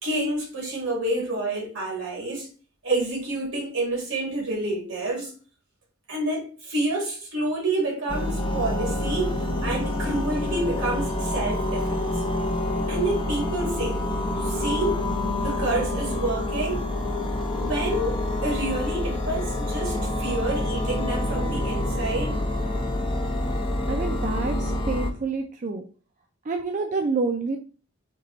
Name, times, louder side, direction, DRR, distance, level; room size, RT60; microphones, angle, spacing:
voice 1, 0.0-2.5 2.8-5.3 6.1-9.4 9.6-12.1 12.9-14.0 14.4-15.0 15.4-16.9 17.6-22.4, right 2 dB, 70° right, 2.4 m, -28 dB
sound 1, 8.1-25.1, left 1 dB, 25° left, 0.6 m, -27 dB
voice 2, 23.9-25.9 26.5-27.6, right 4 dB, 35° right, 0.4 m, -28 dB
4.5 x 3.0 x 4.0 m
head